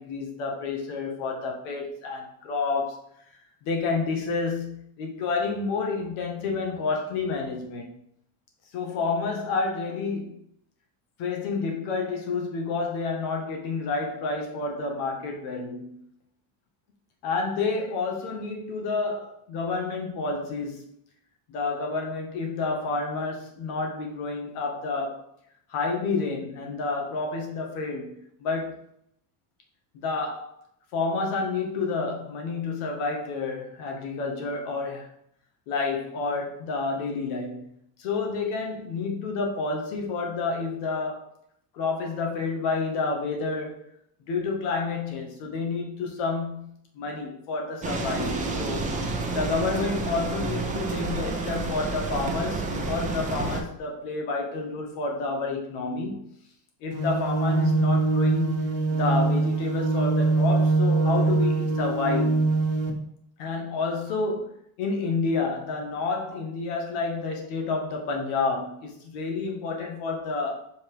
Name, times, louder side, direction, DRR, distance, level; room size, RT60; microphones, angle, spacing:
voice 1, 0.0-3.1 3.6-8.0 8.7-10.4 11.2-16.0 17.2-20.8 21.5-25.2 25.7-28.8 29.9-30.6 30.9-35.1 35.7-37.7 38.0-41.3 41.7-43.8 44.3-48.9 49.3-56.3 56.8-62.5 63.4-70.7, left 4 dB, 75° left, 1 dB, 2.1 m, -29 dB
sound 1, 47.8-53.6, right 3 dB, 15° right, 0.9 m, -29 dB
sound 2, 56.9-62.9, right 3 dB, 30° right, 1.3 m, -23 dB
5.7 x 4.4 x 5.1 m, 0.69 s
cardioid pair, 145°, 47 cm